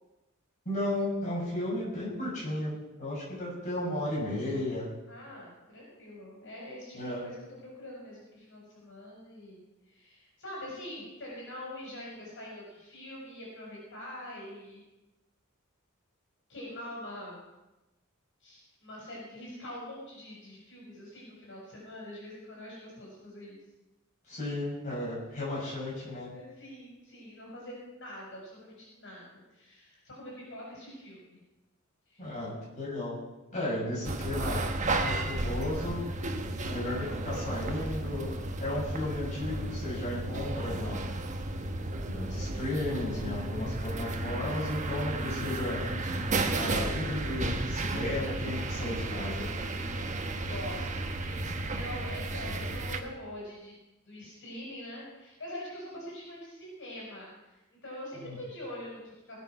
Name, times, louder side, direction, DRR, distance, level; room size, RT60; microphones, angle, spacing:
voice 1, 0.6-2.7 3.0-4.8 6.9-7.2 24.3-26.3 32.2-33.1 33.5-34.6 35.0-36.0 36.6-38.3 38.6-41.0 42.0-45.8 46.5-49.4 58.1-58.3, left 1 dB, 35° left, -6 dB, 6.9 m, -34 dB
voice 2, 5.1-14.8 16.5-17.4 18.4-23.6 26.3-31.4 32.1-32.3 50.5-51.1 51.7-53.7 54.1-59.4, left 1 dB, 60° left, -4 dB, 6.1 m, -44 dB
sound 1, 34.0-53.0, right 2 dB, 35° right, 1.1 m, -33 dB
19.5 x 8.5 x 6.1 m, 1.0 s
head